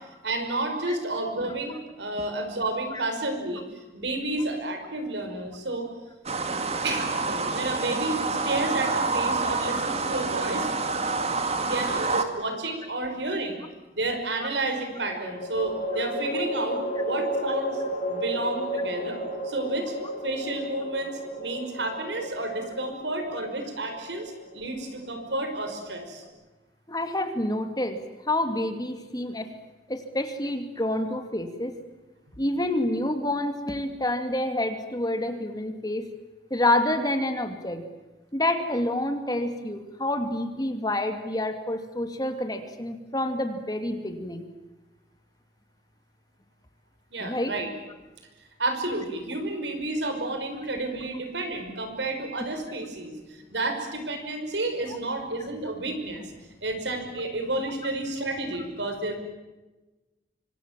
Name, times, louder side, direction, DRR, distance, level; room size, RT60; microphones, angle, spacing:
voice 1, 0.2-3.6 3.9-5.9 6.8-10.7 11.6-13.6 13.9-17.8 18.1-19.9 20.2-26.2 32.3-32.4 47.1-47.7 48.6-56.3 56.6-59.1, right 2 dB, 85° right, 5 dB, 5.8 m, -31 dB
sound 1, 6.3-12.2, right 3 dB, 35° right, 2.0 m, -27 dB
sound 2, 12.4-12.7 14.9-26.2, equal, 45° left, 6.7 m, -33 dB
voice 2, 26.9-28.0 28.3-29.5 29.9-31.7 32.4-36.1 36.5-37.8 38.3-44.4 47.2-47.5, left 1 dB, 20° left, 7 dB, 2.5 m, -28 dB
26.5 x 25.0 x 7.6 m, 1.1 s
head